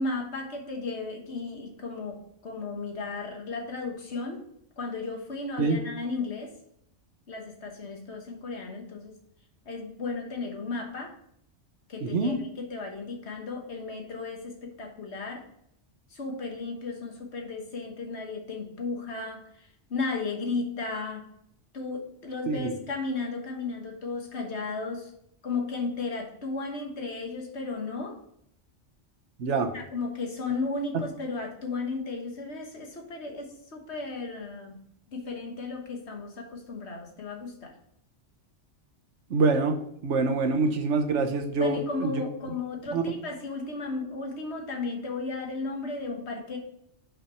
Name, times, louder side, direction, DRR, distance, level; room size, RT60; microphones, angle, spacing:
voice 1, 0.0-4.4 4.8-6.5 7.3-9.2 9.6-11.1 11.9-15.4 16.1-21.3 21.7-25.1 25.4-28.2 29.7-34.8 35.1-37.7 41.6-46.6, left 3 dB, 65° left, 2 dB, 1.6 m, -34 dB
voice 2, 12.0-12.4 22.5-22.7 29.4-29.7 39.3-39.8 40.0-42.2 42.9-43.0, right 3 dB, 75° right, 5 dB, 1.2 m, -25 dB
5.6 x 5.1 x 5.7 m, 0.71 s
omnidirectional pair, 1.2 m